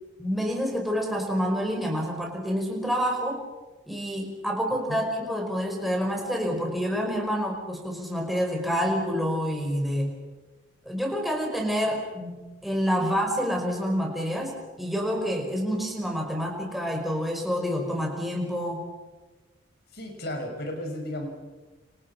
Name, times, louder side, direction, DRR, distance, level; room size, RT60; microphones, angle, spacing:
voice 1, 0.2-3.4 3.9-10.1 10.9-18.8, equal, ahead, 0 dB, 5.3 m, -28 dB
voice 2, 19.9-21.3, left 1 dB, 55° left, 4 dB, 6.2 m, -34 dB
30.0 x 27.5 x 5.9 m, 1.2 s
head